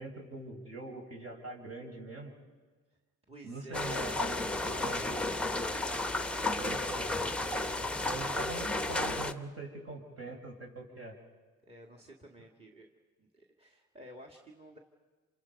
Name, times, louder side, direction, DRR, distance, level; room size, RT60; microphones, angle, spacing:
voice 1, 0.0-2.3 3.4-4.4 4.6-5.0 6.4-7.1 7.7-11.2, right 2 dB, 55° right, 1 dB, 5.3 m, -43 dB
voice 2, 3.3-5.1 5.7-6.6 6.9-7.1 7.5-8.4 11.7-12.9 13.2-14.8, right 1 dB, 20° right, 3 dB, 2.0 m, -52 dB
sound 1, 3.7-9.3, left 2 dB, 5° left, 0.9 m, -33 dB
28.0 x 26.0 x 5.3 m, 1.4 s
cardioid pair, 90°, 30 cm